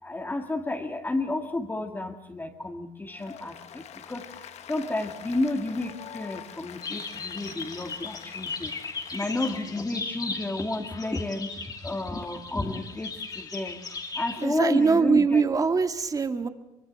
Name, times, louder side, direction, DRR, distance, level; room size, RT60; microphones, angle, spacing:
voice 1, 0.0-4.3 4.7-8.8 9.1-11.5 11.8-13.8 14.1-15.4, left 2 dB, 15° left, 3 dB, 2.1 m, -31 dB
Applause, 3.1-9.8, left 9 dB, 60° left, 1.4 m, -45 dB
sound 1, 6.8-14.5, left 4 dB, 30° left, 2.8 m, -37 dB
voice 2, 14.4-16.5, right 5 dB, 25° right, 7 dB, 1.9 m, -23 dB
24.5 x 24.0 x 7.5 m, 0.90 s
cardioid pair, 125°, 13 cm